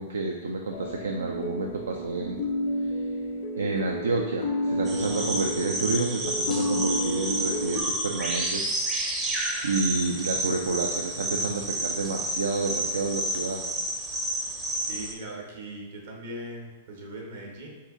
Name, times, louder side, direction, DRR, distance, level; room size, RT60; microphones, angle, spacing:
voice 1, 0.0-2.4 3.6-9.2 9.6-13.6, right 3 dB, 80° right, 2 dB, 0.3 m, -29 dB
sound 1, 0.7-7.8, equal, 50° left, 0.5 m, -31 dB
sound 2, 4.9-15.1, right 1 dB, 20° right, 0.6 m, -30 dB
voice 2, 14.8-17.7, right 1 dB, 65° right, -1 dB, 1.1 m, -39 dB
4.1 x 2.6 x 3.7 m, 1.2 s
hypercardioid pair, 110°, 0 cm